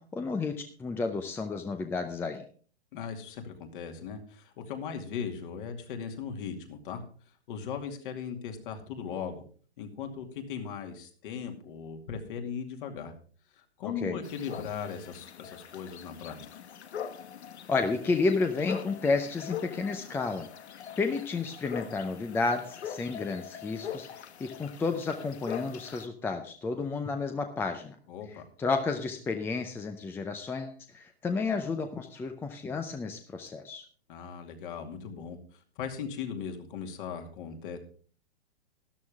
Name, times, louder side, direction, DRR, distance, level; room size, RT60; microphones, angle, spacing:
voice 1, 0.1-2.4 14.0-14.2 17.7-20.5 21.0-28.0 28.6-33.8, left 4 dB, 5° left, 7 dB, 0.6 m, -31 dB
voice 2, 2.9-7.0 7.5-9.4 9.8-13.1 13.5-16.4 28.1-28.4 34.1-35.4 35.8-37.8, left 7 dB, 50° left, 5 dB, 2.4 m, -38 dB
sound 1, 14.2-26.1, left 8 dB, 75° left, 1.2 m, -42 dB
13.0 x 11.5 x 3.6 m, 0.43 s
hypercardioid pair, 135°, 33 cm